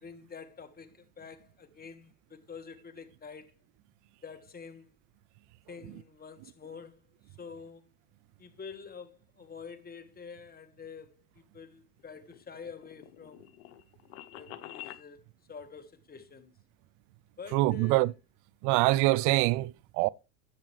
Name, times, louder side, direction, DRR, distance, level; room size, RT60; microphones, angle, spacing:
voice 1, 0.0-3.6 4.2-4.9 5.7-7.0 7.3-7.9 8.4-13.5 14.3-16.5 17.4-18.1, left 5 dB, 20° left, 1.4 m, -47 dB
sound 1, 12.0-15.0, left 13 dB, 60° left, 1.0 m, -47 dB
voice 2, 17.5-18.1 18.6-20.1, right 19 dB, 45° right, 0.4 m, -25 dB
10.5 x 7.6 x 3.2 m
hypercardioid pair, 85°, 47 cm